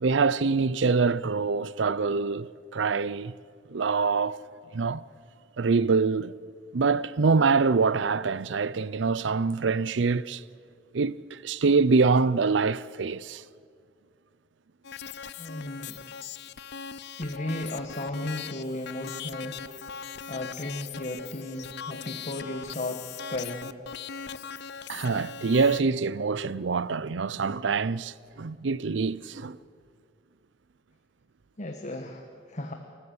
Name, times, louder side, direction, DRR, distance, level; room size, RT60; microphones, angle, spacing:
voice 1, 0.0-3.3 3.7-4.4 4.7-5.0 5.6-6.3 6.7-10.4 10.9-13.4 24.9-29.6, right 4 dB, 70° right, 0.6 m, -25 dB
sound 1, 14.8-25.8, left 7 dB, 60° left, 0.6 m, -40 dB
voice 2, 15.4-16.0 17.2-19.6 20.3-23.8 31.6-32.7, left 1 dB, 40° left, 1.4 m, -35 dB
28.0 x 14.0 x 7.9 m
head